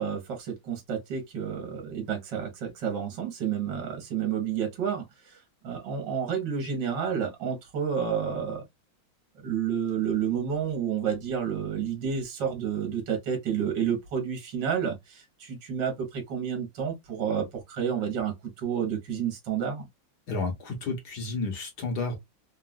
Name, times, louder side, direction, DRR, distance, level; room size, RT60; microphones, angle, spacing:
voice 1, 0.0-5.4 5.6-8.6 9.4-19.9, right 7 dB, 60° right, 1.7 m, -30 dB
voice 2, 20.3-22.2, left 3 dB, 60° left, 1.4 m, -31 dB
3.9 x 2.4 x 2.2 m
omnidirectional pair, 2.2 m